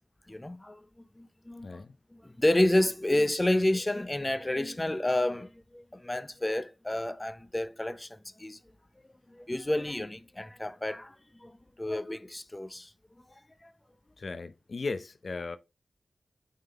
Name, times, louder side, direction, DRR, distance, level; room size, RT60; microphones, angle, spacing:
voice 1, 0.3-0.8 1.2-1.8 2.1-8.6 9.3-11.1 11.4-12.9, left 1 dB, 20° left, 0.6 m, -30 dB
voice 2, 1.6-1.9 14.2-15.6, left 3 dB, 60° left, 0.6 m, -36 dB
9.1 x 3.7 x 3.4 m
cardioid pair, 40°, 0 cm